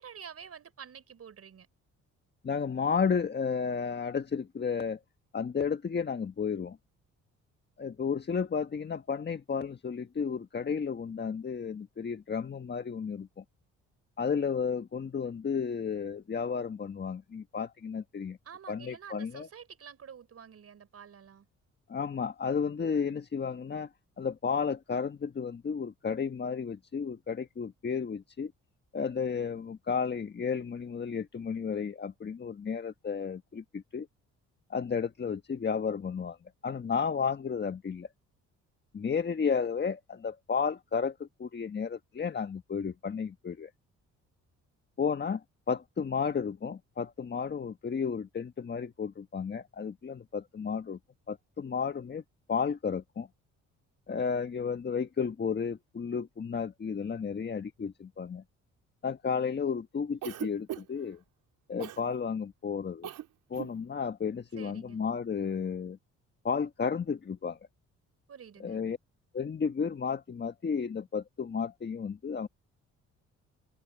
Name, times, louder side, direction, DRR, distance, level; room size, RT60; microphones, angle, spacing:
voice 1, 0.0-1.7 18.4-21.5 64.6-65.0 68.3-68.8, right 7 dB, 50° right, 5.3 m, -48 dB
voice 2, 2.4-5.0 5.3-6.8 7.8-13.4 14.2-18.4 18.7-19.5 21.9-23.9 24.2-28.5 28.9-34.1 34.7-36.4 36.6-38.1 38.9-43.7 45.0-51.0 51.3-52.2 52.5-53.3 54.1-58.4 59.0-61.2 61.7-63.1 63.5-66.0 66.4-67.6 68.6-69.0 69.3-72.5, left 6 dB, 35° left, 1.5 m, -32 dB
Cough, 60.2-61.1 61.8-62.0 63.0-63.3 63.5-63.8, right 13 dB, 85° right, 4.2 m, -38 dB
open air
cardioid pair, 90°, 30 cm